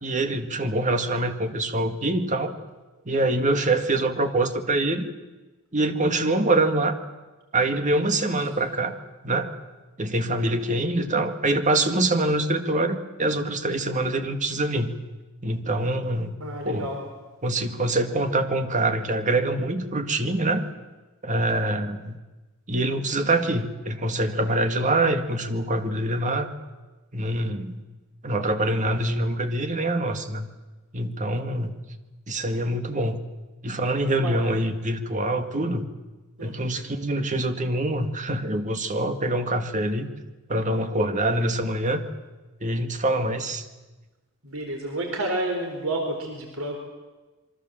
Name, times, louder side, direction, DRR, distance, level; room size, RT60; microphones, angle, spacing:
voice 1, 0.0-2.6 3.1-5.1 5.7-6.9 7.5-9.0 9.2-9.5 10.0-14.9 15.4-16.3 16.6-16.9 17.4-20.7 21.2-22.2 22.7-26.5 27.1-27.8 28.2-30.5 30.9-31.7 32.3-33.2 33.6-35.9 36.4-40.1 40.5-42.0 42.6-43.7, right 2 dB, 35° right, 7 dB, 2.1 m, -25 dB
voice 2, 16.4-17.0 34.2-34.4 36.4-36.7 44.4-46.8, right 1 dB, 75° right, 2 dB, 4.0 m, -30 dB
27.5 x 23.0 x 7.6 m, 1.2 s
head